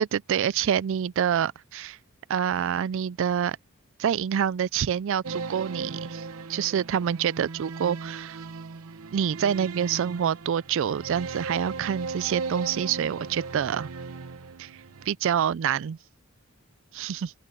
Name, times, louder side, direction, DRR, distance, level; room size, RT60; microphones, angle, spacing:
voice 1, 0.0-2.0 2.3-3.6 4.0-6.2 6.5-8.4 9.1-13.9 14.6-14.7 15.1-16.0 16.9-17.3, right 8 dB, 65° right, 0.4 m, -27 dB
sound 1, 5.2-15.1, right 4 dB, 90° right, 0.8 m, -37 dB
open air
head